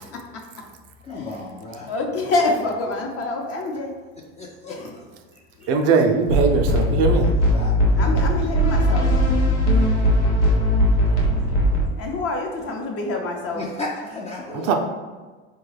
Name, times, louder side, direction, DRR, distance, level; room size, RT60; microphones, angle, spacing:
voice 1, 1.1-1.9 4.4-4.8 6.9-8.6 13.5-14.7, left 2 dB, 20° left, -2 dB, 0.4 m, -35 dB
voice 2, 1.9-3.9 4.6-5.0 7.9-9.1 11.2-11.7 12.0-13.6 14.5-14.6, left 2 dB, 45° left, 2 dB, 0.8 m, -26 dB
voice 3, 5.7-7.3 14.5-14.7, right 4 dB, 45° right, 4 dB, 0.5 m, -20 dB
sound 1, 6.3-11.9, equal, 85° left, 0.8 m, -19 dB
4.0 x 2.2 x 3.3 m, 1.4 s
hypercardioid pair, 85°, 34 cm